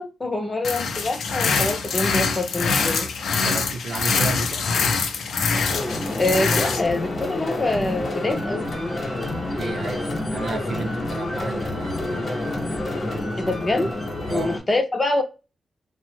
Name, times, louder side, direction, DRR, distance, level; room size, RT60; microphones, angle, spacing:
voice 1, 0.0-3.1 6.2-8.6 13.4-13.9 14.3-15.2, left 2 dB, 20° left, 0.5 m, -25 dB
sound 1, 0.6-6.8, left 4 dB, 90° left, 0.4 m, -24 dB
voice 2, 3.4-4.7 9.5-12.3 14.3-14.6, right 3 dB, 55° right, 0.5 m, -32 dB
sound 2, 5.7-14.6, left 1 dB, 45° left, 0.9 m, -28 dB
3.0 x 2.0 x 3.0 m
wide cardioid pair, 120°, 0 cm